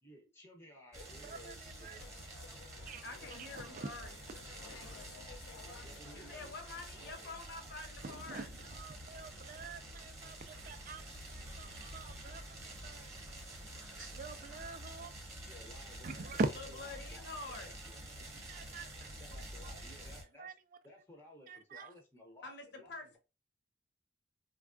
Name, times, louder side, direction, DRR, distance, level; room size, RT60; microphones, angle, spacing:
voice 1, 0.0-2.0 5.6-6.5 6.9-7.3 15.5-18.3 19.2-20.5 20.8-23.2, left 1 dB, 10° left, 0.6 m, -57 dB
sound 1, 0.9-20.2, right 1 dB, 15° right, 1.0 m, -49 dB
voice 2, 1.2-2.0 2.9-3.0 3.5-3.9 8.0-11.0 11.3-13.1 14.1-15.1 16.0-16.5 18.3-19.1 19.6-19.7 20.4-20.5 21.5-21.9, right 3 dB, 45° right, 0.3 m, -43 dB
sound 2, 2.0-8.1, left 4 dB, 85° left, 0.4 m, -56 dB
voice 3, 3.0-4.2 6.1-8.5 16.6-17.7 22.4-23.2, left 3 dB, 60° left, 0.8 m, -47 dB
sound 3, 9.1-14.6, right 4 dB, 80° right, 0.7 m, -59 dB
3.3 x 2.2 x 2.4 m
head